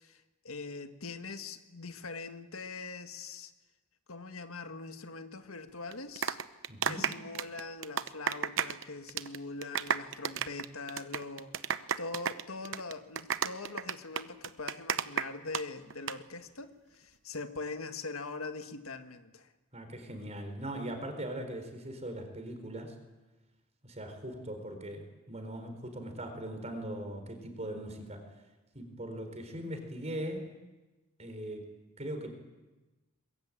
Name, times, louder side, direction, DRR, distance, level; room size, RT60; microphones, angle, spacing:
voice 1, 0.0-3.5 4.1-6.4 6.9-19.5, left 3 dB, 85° left, 8 dB, 1.6 m, -42 dB
sound 1, 5.9-8.8 9.1-9.4 9.6-15.6 15.9-16.1, right 8 dB, 65° right, 0.9 m, -32 dB
voice 2, 6.7-7.1 19.7-22.9 23.8-28.2 28.7-30.5 31.2-31.7 32.0-32.3, right 1 dB, 35° right, 6 dB, 4.4 m, -40 dB
22.5 x 22.0 x 8.7 m, 1.2 s
head